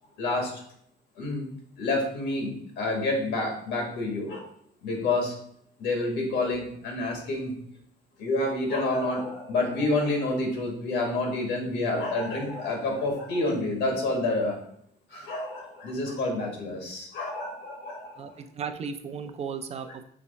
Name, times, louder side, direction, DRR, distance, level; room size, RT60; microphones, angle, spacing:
voice 1, 0.2-0.6 1.2-1.5 1.8-4.5 4.8-5.3 5.8-7.5 8.2-14.6 15.1-18.3, left 2 dB, 90° left, 1 dB, 1.4 m, -28 dB
voice 2, 18.2-20.0, right 6 dB, 35° right, 8 dB, 0.4 m, -35 dB
5.8 x 2.1 x 4.0 m, 0.66 s
cardioid pair, 115°, 18 cm